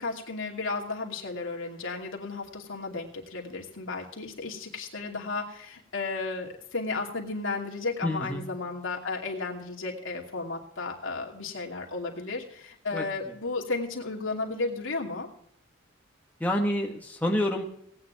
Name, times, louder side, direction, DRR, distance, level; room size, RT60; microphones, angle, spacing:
voice 1, 0.0-15.3, left 3 dB, 75° left, 0 dB, 2.7 m, -34 dB
voice 2, 8.0-8.4 12.9-13.1 16.4-17.6, left 1 dB, 10° left, 0 dB, 1.6 m, -28 dB
18.5 x 9.6 x 3.5 m, 0.69 s
head